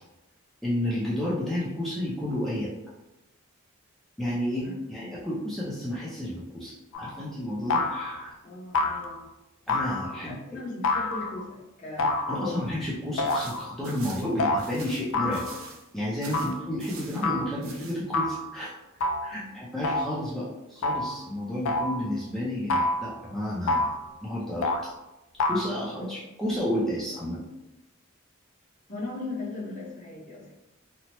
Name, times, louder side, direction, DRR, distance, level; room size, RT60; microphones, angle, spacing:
voice 1, 0.6-2.7 4.2-8.3 9.7-10.3 12.0-15.4 15.9-18.7 19.2-23.9 24.2-24.7 25.5-27.4, left 1 dB, ahead, -8 dB, 0.4 m, -31 dB
voice 2, 4.6-5.1 8.4-9.2 10.3-12.6 14.2-14.3 16.4-16.5 19.3-19.5 26.0-26.1 28.9-30.5, left 2 dB, 40° left, -6 dB, 0.8 m, -38 dB
sound 1, 6.9-7.2 7.7-8.2 8.7-9.2 9.7-10.3 10.8-11.5 12.0-12.7 13.2-13.7 14.4-14.6 15.1-15.7 16.3-16.6 17.2-17.5 18.1-18.5 19.0-19.4 19.8-20.2 20.8-21.2 21.6-22.0 22.7-23.2 23.7-24.1 24.6-24.9 25.4-25.7, left 2 dB, 70° left, 0.3 m, -28 dB
sound 2, 13.2-15.9 16.2-17.3 17.6-18.0, right 4 dB, 80° right, 0.6 m, -45 dB
2.9 x 2.0 x 2.9 m, 0.98 s
head